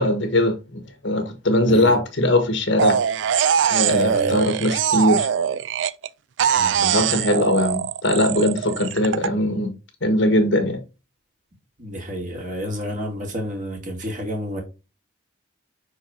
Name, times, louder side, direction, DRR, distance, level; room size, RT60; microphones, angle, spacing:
voice 1, 0.0-3.0 3.7-5.3 6.8-9.7 10.0-10.8, left 1 dB, 65° left, 1.6 m, -20 dB
sound 1, 2.8-6.1 6.4-9.3, right 8 dB, 65° right, 0.4 m, -22 dB
voice 2, 3.9-4.4 6.6-7.0 11.8-14.6, equal, 40° right, 2.4 m, -30 dB
5.9 x 4.5 x 3.7 m
head